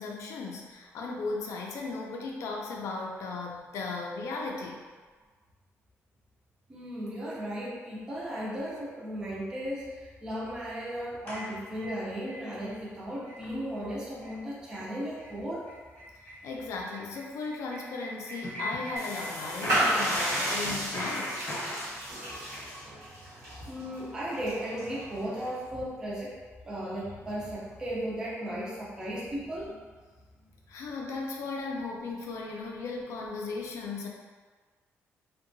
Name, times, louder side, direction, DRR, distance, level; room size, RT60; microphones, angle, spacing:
voice 1, 0.0-4.8 16.4-21.5 30.7-34.1, left 3 dB, 70° left, -1 dB, 0.4 m, -36 dB
voice 2, 6.7-15.7 23.6-26.3 26.6-29.8, equal, 15° right, -6 dB, 0.4 m, -36 dB
sound 1, 11.3-12.4 12.8-12.9 13.2-13.5 13.7-13.8 14.2-14.4 14.7-14.9 15.2-15.3 15.6-19.3 19.6-21.9, left 1 dB, 35° left, 0.8 m, -37 dB
sound 2, 19.0-25.6, right 1 dB, 75° right, 1.0 m, -33 dB
2.7 x 2.2 x 2.6 m, 1.5 s
cardioid pair, 165°, 5 cm